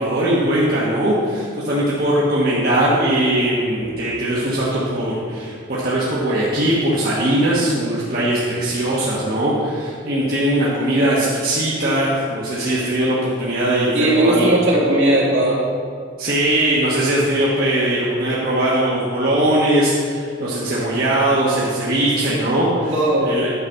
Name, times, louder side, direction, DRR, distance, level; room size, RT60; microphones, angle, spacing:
voice 1, 0.0-14.5 16.2-22.9 23.2-23.5, right 1 dB, 45° right, -7 dB, 1.4 m, -20 dB
voice 2, 13.9-15.6 22.9-23.3, right 1 dB, 65° right, -4 dB, 2.2 m, -17 dB
9.7 x 5.0 x 6.5 m, 2.2 s
head